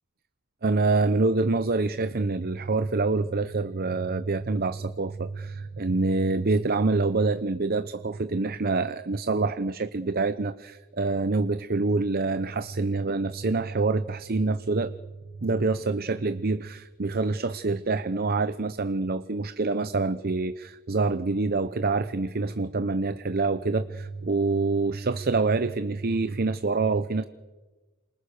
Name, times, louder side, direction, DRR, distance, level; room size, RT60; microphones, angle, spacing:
voice 1, 0.6-15.0 15.4-27.2, right 3 dB, 45° right, 13 dB, 0.8 m, -26 dB
29.0 x 27.0 x 6.6 m, 1.2 s
head